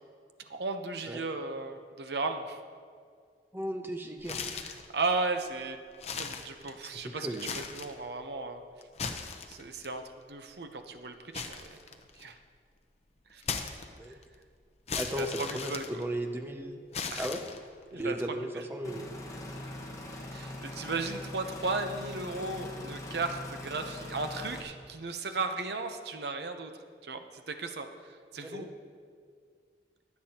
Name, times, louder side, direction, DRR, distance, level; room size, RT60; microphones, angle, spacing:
voice 1, 0.5-2.6 4.6-5.8 6.2-8.6 9.5-10.0 10.3-11.8 12.1-12.4 13.3-13.4 14.1-14.2 15.1-15.8 17.1-17.3 17.9-18.6 20.3-26.7 27.0-27.9 28.3-28.7, right 3 dB, 65° right, 7 dB, 0.8 m, -35 dB
voice 2, 3.5-4.6 6.8-7.4 14.0-14.1 15.0-16.8 17.2-17.4 17.9-19.1 28.4-28.7, right 1 dB, 15° right, 5 dB, 0.6 m, -36 dB
sound 1, 4.2-4.9 5.4-5.5 5.9-7.0 7.3-8.0 8.8-9.9 11.3-12.4 13.4-14.2 14.9-16.4 16.9-17.8, left 5 dB, 35° left, 0.7 m, -37 dB
sound 2, 18.8-24.6, left 1 dB, 20° left, 1.5 m, -42 dB
23.0 x 8.4 x 2.9 m, 2.1 s
head